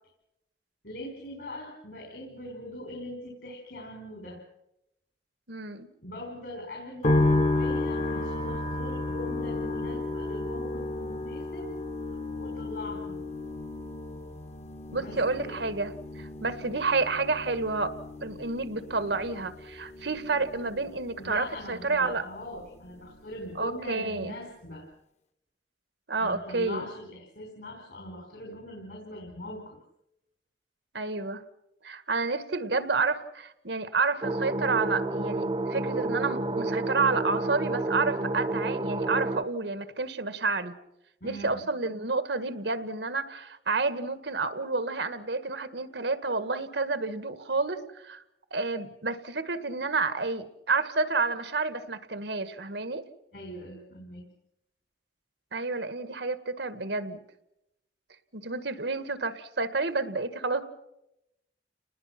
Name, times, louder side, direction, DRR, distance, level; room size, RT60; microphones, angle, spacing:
voice 1, 0.8-4.4 6.0-11.7 12.4-13.3 15.0-15.5 21.2-24.9 26.2-29.8 41.2-41.7 53.3-54.3, left 1 dB, 65° left, 1 dB, 5.0 m, -41 dB
voice 2, 5.5-5.9 14.9-17.9 18.2-22.2 23.6-24.4 26.1-26.9 30.9-31.4 31.8-40.7 41.2-48.2 48.5-53.0 55.5-57.2 58.3-60.7, right 3 dB, 85° right, 11 dB, 1.7 m, -30 dB
sound 1, 7.0-22.3 22.6-23.4, left 2 dB, 40° left, 1.2 m, -32 dB
sound 2, 34.2-39.4, right 2 dB, 30° right, 0.8 m, -30 dB
30.0 x 20.0 x 5.9 m, 0.86 s
head